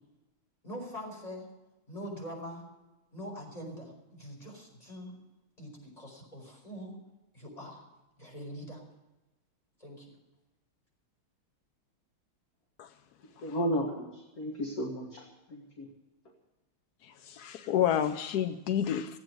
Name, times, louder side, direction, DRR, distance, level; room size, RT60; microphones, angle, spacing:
voice 1, 0.6-1.5 1.9-2.6 3.1-5.1 5.6-7.0 7.3-7.8 8.2-8.8 9.8-10.1, equal, 15° left, -2 dB, 5.1 m, -43 dB
voice 2, 13.4-15.9, equal, 45° left, 1 dB, 2.0 m, -34 dB
voice 3, 17.0-19.2, left 10 dB, 70° left, 8 dB, 0.9 m, -30 dB
15.5 x 8.8 x 9.2 m, 1.0 s
omnidirectional pair, 2.3 m